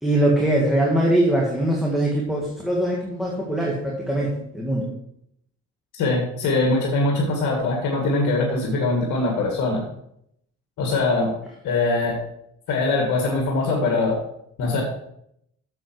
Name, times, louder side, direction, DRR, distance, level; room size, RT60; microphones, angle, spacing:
voice 1, 0.0-4.9, right 1 dB, ahead, -3 dB, 1.9 m, -22 dB
voice 2, 5.9-9.8 10.8-11.3 11.6-12.1 12.7-14.2 14.6-14.8, left 3 dB, 75° left, -1 dB, 2.0 m, -22 dB
8.0 x 7.1 x 4.7 m, 0.75 s
cardioid pair, 90°, 30 cm